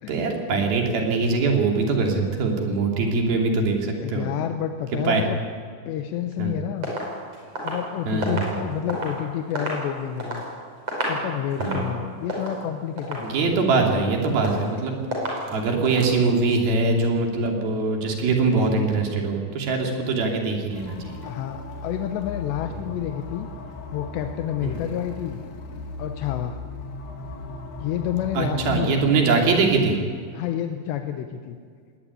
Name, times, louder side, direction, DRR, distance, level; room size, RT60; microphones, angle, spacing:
voice 1, 0.1-4.2 5.0-5.2 6.4-6.6 8.1-8.6 11.6-11.8 13.2-15.0 15.5-21.2 24.6-24.8 28.3-30.0, right 3 dB, 60° right, 2 dB, 4.4 m, -22 dB
voice 2, 4.0-5.4 5.9-6.9 7.6-10.4 11.1-13.8 21.2-23.5 23.9-25.4 26.0-26.6 27.8-29.3 30.3-31.6, left 10 dB, 85° left, 6 dB, 3.1 m, -29 dB
sound 1, 6.8-9.2 9.5-10.5 10.8-11.2 11.5-11.9 12.3-12.6 13.0-13.3 13.7-14.1 14.4-14.8 15.1-15.5 15.9-16.2, right 1 dB, 35° right, 6.5 m, -30 dB
sound 2, 20.7-28.7, left 3 dB, 70° left, 4.0 m, -37 dB
19.5 x 18.5 x 9.9 m, 2.1 s
omnidirectional pair, 5.0 m